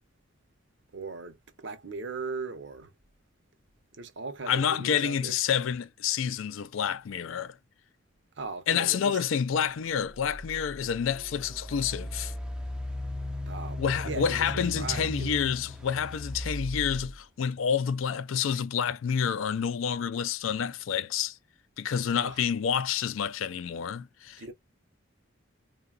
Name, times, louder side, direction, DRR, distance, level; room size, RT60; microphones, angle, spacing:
voice 1, 0.9-2.9 4.0-5.4 8.4-9.2 13.5-15.4 22.1-22.4 24.4-24.5, right 4 dB, 65° right, 0.7 m, -39 dB
voice 2, 4.5-7.6 8.7-12.3 13.8-21.4 21.8-24.5, left 7 dB, 80° left, 0.4 m, -28 dB
Engine, 10.4-10.5 11.1-17.1, left 1 dB, 5° right, 0.4 m, -36 dB
3.8 x 2.2 x 2.3 m
head